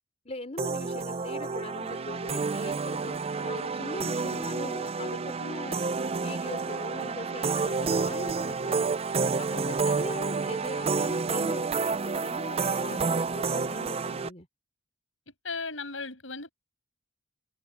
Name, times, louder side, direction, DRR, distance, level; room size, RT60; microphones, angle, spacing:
voice 1, 0.3-5.8 6.2-8.8 9.4-14.5, left 2 dB, 35° left, 3.8 m, -41 dB
sound 1, 0.6-14.3, right 4 dB, 30° right, 0.5 m, -29 dB
voice 2, 15.4-16.5, left 4 dB, 85° left, 7.9 m, -36 dB
head